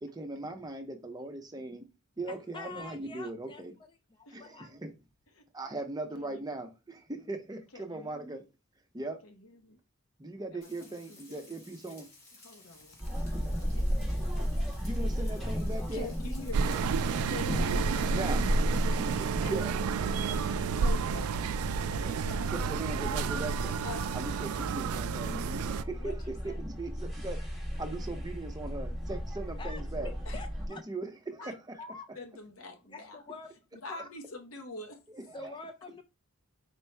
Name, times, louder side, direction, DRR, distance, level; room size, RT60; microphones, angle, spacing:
voice 1, 0.0-1.8 2.2-3.7 4.3-4.9 5.5-8.4 8.9-9.2 10.2-12.1 14.8-16.1 18.1-18.5 19.2-19.7 22.5-23.8 24.1-26.1 26.4-27.4 27.8-30.1 30.7-31.8 35.1-35.5, right 2 dB, 20° right, 0.6 m, -39 dB
voice 2, 2.3-4.7 29.6-30.8 31.4-31.5 31.8-32.1 32.9-33.5 33.9-34.1 35.3-36.0, left 4 dB, 20° left, 0.4 m, -46 dB
voice 3, 6.1-6.4 7.7-8.4 9.2-9.8 10.5-11.5 11.8-12.0 12.3-14.0 15.2-15.4 15.9-16.8 17.3-18.2 18.4-18.5 18.9-19.5 20.4-22.7 23.8-24.1 26.0-26.6 30.3-30.4 31.4-31.5 32.1-33.2 33.7-35.0, left 3 dB, 70° left, 0.9 m, -46 dB
Frying (food), 10.6-18.1, left 2 dB, 45° left, 2.0 m, -56 dB
sound 1, 13.0-30.7, equal, ahead, 1.4 m, -34 dB
sound 2, 16.5-25.8, right 7 dB, 85° right, 0.3 m, -32 dB
4.4 x 2.9 x 3.3 m
head